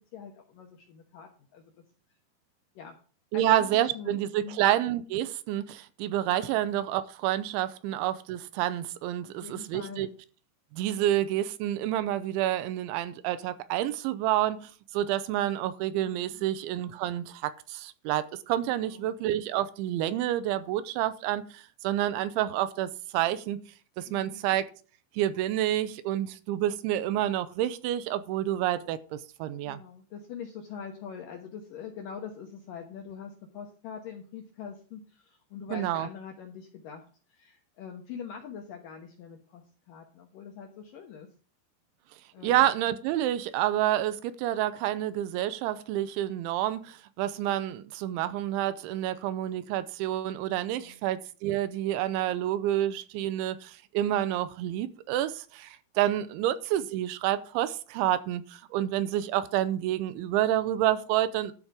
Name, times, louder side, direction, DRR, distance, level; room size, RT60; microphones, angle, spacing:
voice 1, 0.1-1.7 2.8-3.0 3.3-4.6 6.3-6.6 9.2-10.2 16.3-16.6 18.8-19.1 24.0-24.4 29.6-37.0 37.3-41.3 42.3-42.7 50.6-51.0, left 7 dB, 70° left, 2.1 m, -43 dB
voice 2, 3.3-10.1 10.7-23.6 24.0-24.7 25.2-29.8 35.7-36.1 42.4-61.5, right 12 dB, 85° right, 3.1 m, -29 dB
12.5 x 5.2 x 6.2 m
omnidirectional pair, 5.5 m